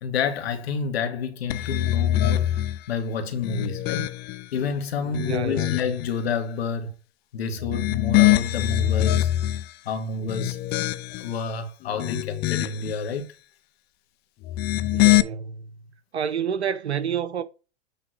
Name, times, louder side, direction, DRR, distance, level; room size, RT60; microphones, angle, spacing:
voice 1, 0.0-2.6 2.9-4.1 4.5-6.9 7.3-9.3 9.9-10.6 11.2-13.4, left 5 dB, 65° left, 2.0 m, -29 dB
sound 1, 1.5-2.8 3.3-4.5 5.0-6.1 7.6-9.7 10.2-11.3 11.8-12.9 14.4-15.2, left 15 dB, 30° left, 0.6 m, -23 dB
voice 2, 5.2-5.8 14.9-15.9 16.1-17.4, right 7 dB, 80° right, 1.1 m, -29 dB
8.8 x 3.5 x 5.8 m
hypercardioid pair, 110°, 33 cm